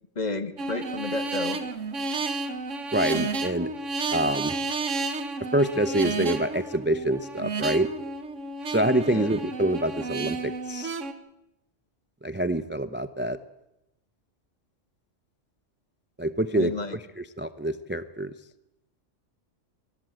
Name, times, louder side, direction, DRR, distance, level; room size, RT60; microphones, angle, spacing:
voice 1, 0.1-1.6 9.1-9.3 16.5-17.0, left 3 dB, 35° left, 12 dB, 1.3 m, -31 dB
sound 1, 0.6-11.1, right 3 dB, 80° right, 1.7 m, -31 dB
voice 2, 2.9-3.7 4.1-4.6 5.5-7.9 8.7-11.0 12.2-13.4 16.2-16.7 17.2-18.3, right 1 dB, 15° right, 13 dB, 0.5 m, -26 dB
23.0 x 14.5 x 9.1 m, 0.89 s
omnidirectional pair, 1.3 m